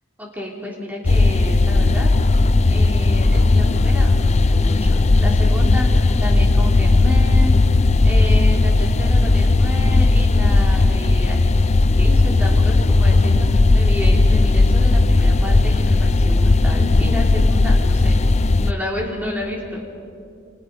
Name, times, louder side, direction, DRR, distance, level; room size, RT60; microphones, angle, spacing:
voice 1, 0.2-2.1 2.4-7.8 8.0-11.6 12.0-18.2 18.6-19.9, left 1 dB, 10° right, -1 dB, 3.4 m, -30 dB
sound 1, 1.0-18.7, left 2 dB, 35° left, 0.5 m, -16 dB
29.5 x 26.0 x 5.2 m, 2.4 s
head